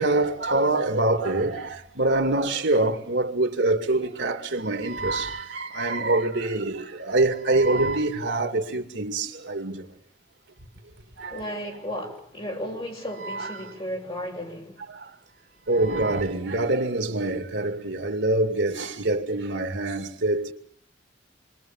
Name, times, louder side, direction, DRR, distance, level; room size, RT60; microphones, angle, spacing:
voice 1, 0.0-9.9 11.2-11.4 13.2-13.7 14.9-15.1 15.7-20.5, right 2 dB, 65° right, 2.6 m, -25 dB
voice 2, 11.3-14.8, equal, 30° left, 7.2 m, -34 dB
28.0 x 23.5 x 7.4 m
head